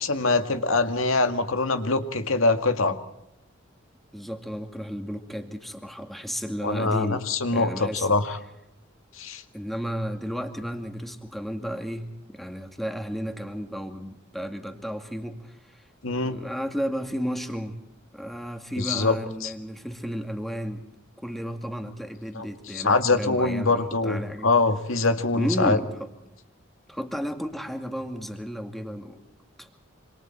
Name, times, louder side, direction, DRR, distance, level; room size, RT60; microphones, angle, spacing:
voice 1, 0.0-3.0 6.6-8.4 9.2-9.4 16.0-16.4 18.8-19.1 19.4-19.5 22.3-22.4 22.7-25.8, left 3 dB, 90° left, 8 dB, 2.1 m, -23 dB
voice 2, 4.1-7.3 7.5-8.1 9.5-15.8 16.2-17.8 18.1-20.8 21.2-24.5 25.3-26.1 26.9-29.2 29.6-29.7, equal, ahead, 5 dB, 2.2 m, -33 dB
27.0 x 26.0 x 4.5 m, 0.88 s
head